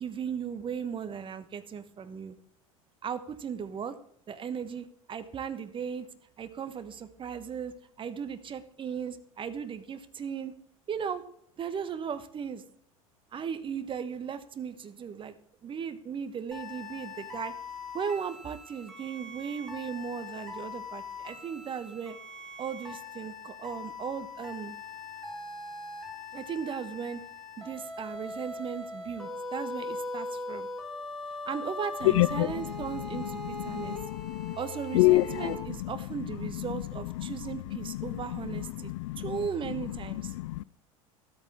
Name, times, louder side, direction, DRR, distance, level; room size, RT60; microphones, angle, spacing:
voice 1, 0.0-2.4 3.0-4.0 4.3-6.1 6.4-10.5 10.9-11.2 11.6-12.6 13.3-15.3 15.6-17.5 17.9-22.2 22.6-24.7 26.3-27.2 27.6-30.7 31.5-34.0 34.6-38.9 39.2-40.3, right 7 dB, 30° right, 1.2 m, -37 dB
sound 1, 16.5-35.6, left 2 dB, ahead, 4.0 m, -41 dB
voice 2, 32.2-32.5 33.7-34.6 34.9-35.6 38.9-39.2 40.4-40.6, left 18 dB, 60° left, 0.4 m, -26 dB
13.5 x 13.0 x 3.7 m
figure-of-eight pair, 75°, 18 cm